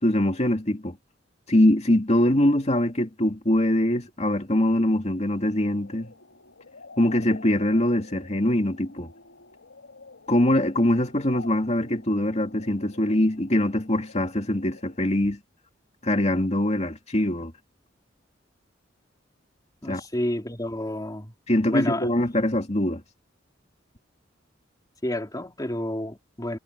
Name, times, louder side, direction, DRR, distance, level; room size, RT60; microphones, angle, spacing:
voice 1, 0.0-1.0 1.5-6.1 7.0-9.1 10.3-15.4 16.0-17.5 19.9-20.0 21.5-23.0, left 1 dB, 35° left, 2.4 m, -23 dB
sound 1, 5.2-15.2, left 3 dB, 85° left, 4.2 m, -49 dB
voice 2, 19.8-21.3 21.7-22.1 25.0-26.6, left 1 dB, 20° left, 2.9 m, -30 dB
head